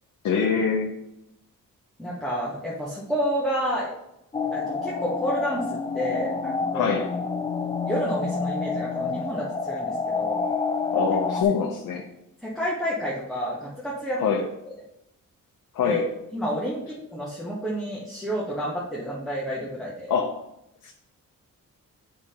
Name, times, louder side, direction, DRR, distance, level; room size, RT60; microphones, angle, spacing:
voice 1, 0.2-1.0 6.7-7.1 10.9-12.1 14.2-14.5 15.7-16.1 20.1-20.4 20.8-20.9, left 6 dB, 60° left, 2 dB, 0.7 m, -24 dB
voice 2, 2.0-3.9 4.5-7.0 7.9-10.5 12.4-14.2 15.8-16.0 16.3-20.1, equal, ahead, -7 dB, 1.1 m, -30 dB
sound 1, 4.3-11.4, left 4 dB, 15° left, 0.3 m, -28 dB
7.3 x 5.0 x 2.9 m, 0.84 s
wide cardioid pair, 130°, 34 cm